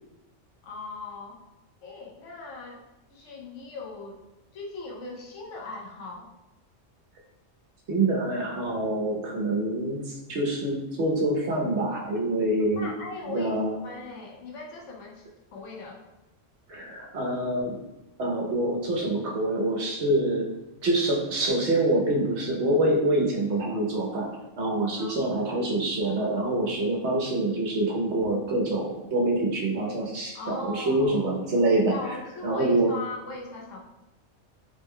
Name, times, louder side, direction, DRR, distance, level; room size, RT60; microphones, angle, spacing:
voice 1, 0.6-1.4 1.8-2.8 3.1-4.2 4.5-6.3 12.8-15.3 15.5-16.0 25.0-25.3 30.3-31.2 31.9-33.8, left 3 dB, 80° left, -1 dB, 1.0 m, -39 dB
voice 2, 7.9-12.9 13.3-13.7 16.7-17.7 18.2-20.5 20.8-24.3 24.6-31.9 32.4-32.9, right 1 dB, 65° right, -1 dB, 1.0 m, -26 dB
3.3 x 2.1 x 3.5 m, 1.0 s
omnidirectional pair, 1.3 m